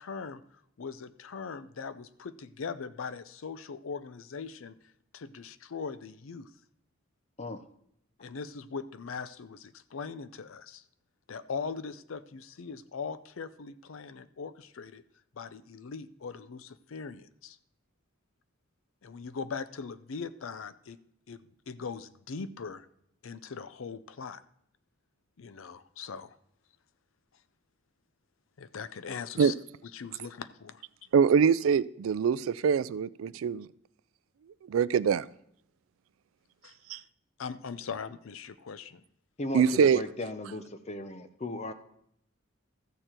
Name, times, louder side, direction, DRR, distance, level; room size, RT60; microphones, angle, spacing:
voice 1, 0.0-4.7 5.1-6.5 8.2-10.8 11.3-15.0 15.4-17.6 19.0-21.0 21.3-22.9 23.2-24.4 25.4-26.4 28.6-29.5 29.9-30.8 36.6-37.0 37.4-39.0, left 5 dB, 85° left, 14 dB, 0.5 m, -40 dB
voice 2, 31.1-33.7 34.7-35.3 36.9-37.0 39.5-40.0, right 7 dB, 85° right, 18 dB, 0.3 m, -24 dB
voice 3, 39.4-41.7, left 2 dB, 35° left, 9 dB, 0.7 m, -36 dB
14.0 x 6.7 x 4.4 m, 0.73 s
head